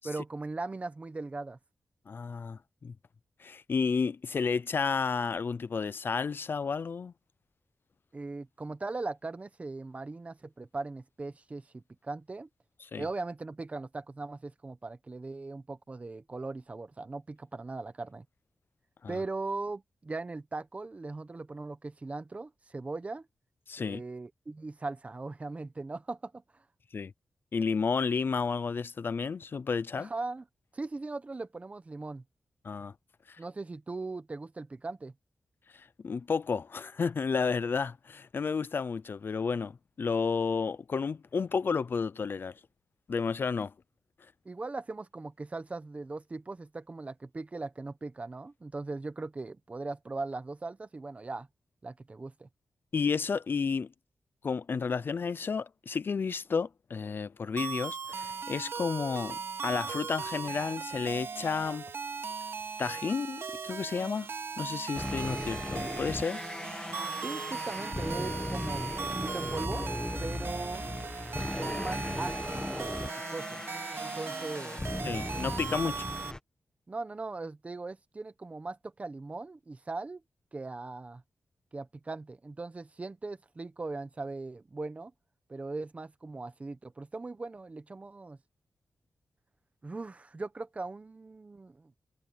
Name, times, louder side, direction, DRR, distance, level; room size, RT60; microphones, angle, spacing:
voice 1, 0.0-1.6 8.1-12.5 12.9-18.2 19.1-23.3 23.8-26.6 30.0-30.4 30.7-32.2 33.4-35.1 44.4-51.5 51.8-52.5 67.2-69.9 70.2-70.8 71.5-73.6 74.0-74.8 76.9-80.2 80.5-81.2 81.7-85.1 85.5-88.4 89.8-91.9, right 3 dB, 30° right, 1.2 m, -39 dB
voice 2, 2.1-2.9 3.4-7.1 12.8-13.0 19.0-19.2 23.7-24.0 26.9-27.1 27.5-30.1 32.6-32.9 33.3-33.4 35.7-42.5 43.1-43.7 52.9-53.9 54.4-61.8 62.8-64.3 64.6-66.4 75.0-76.0, left 5 dB, 50° left, 0.6 m, -31 dB
sound 1, 57.6-76.3, right 5 dB, 60° right, 3.4 m, -38 dB
sound 2, 64.9-76.4, left 1 dB, 15° left, 1.8 m, -37 dB
wide cardioid pair, 115°, 5 cm